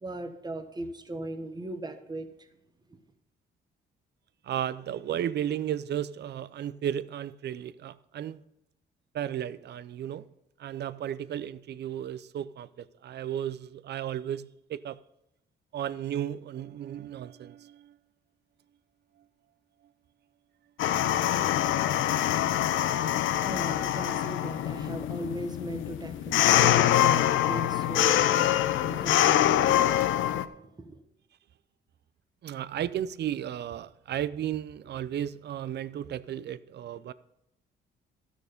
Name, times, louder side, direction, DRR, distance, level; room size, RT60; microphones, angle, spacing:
voice 1, 0.0-2.5 2.9-3.0 22.1-31.0, right 1 dB, 20° right, 1.2 m, -40 dB
voice 2, 4.5-8.4 9.1-10.3 10.6-15.0 15.7-17.9 32.4-37.1, right 10 dB, 60° right, 0.6 m, -34 dB
sound 1, 20.8-30.5, left 12 dB, 80° left, 0.6 m, -24 dB
13.0 x 6.4 x 5.2 m
cardioid pair, 90°, 20 cm